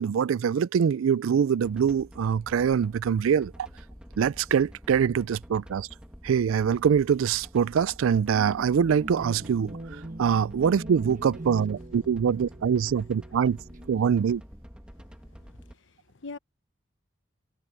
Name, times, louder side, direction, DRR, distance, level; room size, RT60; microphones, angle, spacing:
voice 1, 0.0-3.5 4.2-5.9 6.2-13.6 13.9-14.4, right 7 dB, 85° right, 0.4 m, -24 dB
sound 1, 1.6-15.7, equal, 5° right, 1.9 m, -48 dB
sound 2, 8.3-14.7, right 1 dB, 40° right, 1.4 m, -42 dB
voice 2, 15.5-16.4, left 3 dB, 65° left, 1.0 m, -43 dB
head